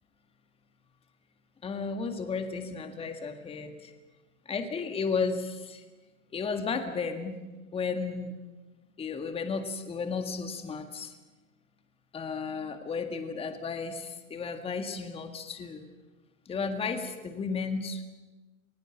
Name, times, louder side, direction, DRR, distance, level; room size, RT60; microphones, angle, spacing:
voice 1, 1.6-3.9 4.5-5.8 6.3-7.4 7.7-8.3 9.0-11.1 12.1-15.9 16.5-18.0, left 5 dB, 15° left, 7 dB, 1.8 m, -33 dB
29.0 x 20.0 x 7.3 m, 1.2 s
hypercardioid pair, 140°, 41 cm